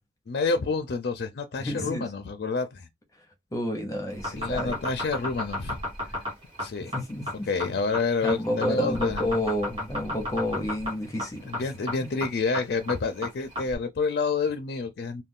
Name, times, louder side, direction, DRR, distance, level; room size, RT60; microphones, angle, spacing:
voice 1, 0.3-2.9 4.3-5.8 6.6-6.9 7.5-9.2 11.5-15.2, left 4 dB, 60° left, 0.4 m, -28 dB
voice 2, 1.6-2.1 3.5-4.8 6.9-7.5 8.2-11.5 12.0-12.1, left 1 dB, 20° left, 0.7 m, -30 dB
sound 1, 4.1-13.7, left 1 dB, 30° right, 1.2 m, -32 dB
2.4 x 2.2 x 3.6 m
head